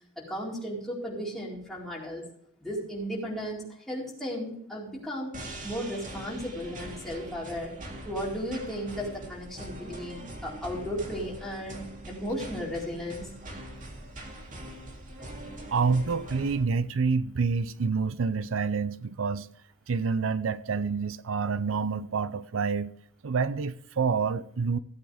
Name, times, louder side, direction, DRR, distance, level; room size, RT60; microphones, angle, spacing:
voice 1, 0.2-2.2 2.6-5.4 5.6-7.7 8.0-11.8 12.1-13.3, equal, ahead, 4.5 m, -35 dB
sound 1, 5.3-16.6, right 1 dB, 40° right, 2.1 m, -42 dB
voice 2, 15.4-19.5 19.9-22.9 23.2-24.8, right 5 dB, 90° right, 0.6 m, -28 dB
17.0 x 8.7 x 3.4 m
head